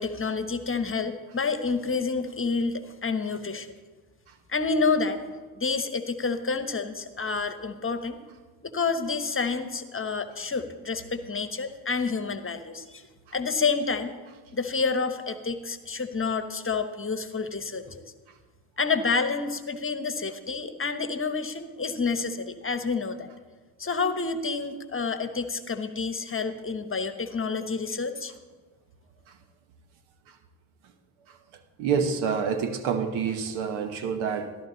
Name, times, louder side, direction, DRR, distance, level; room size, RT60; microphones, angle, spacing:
voice 1, 0.0-3.7 4.5-5.2 5.6-8.2 8.6-13.0 13.3-14.1 14.5-18.0 18.8-23.3 23.8-28.3, left 4 dB, 25° left, 9 dB, 1.2 m, -29 dB
voice 2, 31.8-34.6, right 6 dB, 75° right, 9 dB, 1.3 m, -28 dB
13.5 x 12.0 x 4.0 m, 1.4 s
supercardioid pair, 60°, 47 cm